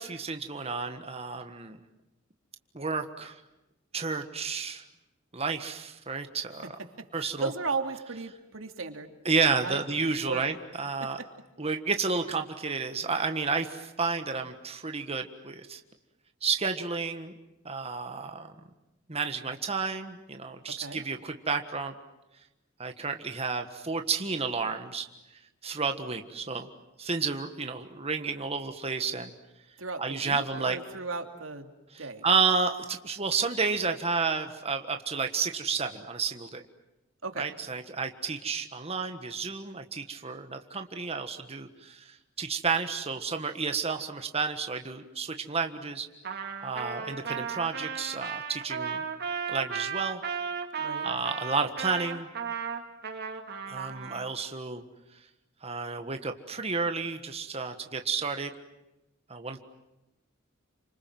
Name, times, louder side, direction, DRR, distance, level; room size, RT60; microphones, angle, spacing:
voice 1, 0.0-1.8 2.7-3.4 3.9-4.8 5.3-6.8 7.1-7.5 9.2-11.2 11.6-15.8 16.4-17.3 17.6-18.5 19.1-21.9 22.8-25.1 25.6-26.7 27.0-29.3 30.0-30.8 31.9-36.6 37.4-46.1 46.6-49.0 49.5-50.2 51.0-52.3 53.7-54.8 55.6-58.5 59.3-59.6, right 4 dB, 30° right, 6 dB, 1.5 m, -31 dB
voice 2, 7.1-9.1 9.6-9.8 10.2-10.4 11.2-11.3 20.8-21.0 29.8-31.7 32.0-32.2 37.2-37.5 50.8-51.1, right 4 dB, 85° right, 6 dB, 2.8 m, -35 dB
Trumpet, 46.2-54.3, right 6 dB, 55° right, 2.8 m, -35 dB
29.5 x 26.0 x 7.8 m, 0.94 s
head